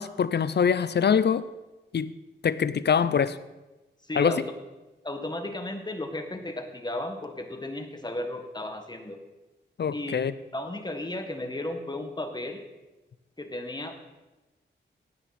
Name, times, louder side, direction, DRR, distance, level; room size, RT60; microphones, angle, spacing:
voice 1, 0.0-1.5 1.9-2.1 2.4-3.4 4.2-4.4 9.8-10.3, left 7 dB, 60° left, 15 dB, 0.6 m, -24 dB
voice 2, 4.0-4.4 5.0-9.2 9.9-10.2 10.5-12.6 13.4-13.9, left 1 dB, 20° left, 5 dB, 1.7 m, -34 dB
16.5 x 9.0 x 4.3 m, 1.1 s
wide cardioid pair, 80°, 20 cm